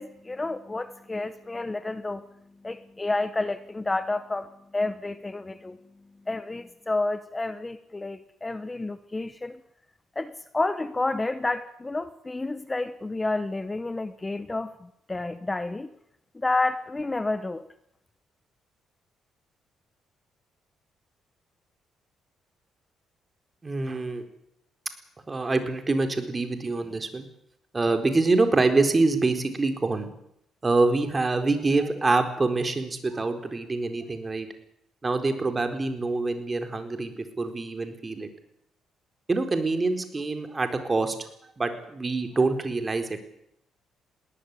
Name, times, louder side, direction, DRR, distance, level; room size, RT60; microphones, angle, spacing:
voice 1, 0.0-2.2 2.6-5.8 6.3-9.6 10.1-14.7 15.1-15.9 16.3-17.6, left 2 dB, 20° left, 12 dB, 1.2 m, -30 dB
voice 2, 23.6-24.2 25.3-27.2 27.7-30.1 30.6-34.5 35.0-38.3 39.3-41.2 41.6-43.3, right 3 dB, 25° right, 7 dB, 4.4 m, -25 dB
21.0 x 18.0 x 9.8 m, 0.75 s
cardioid pair, 90°, 0 cm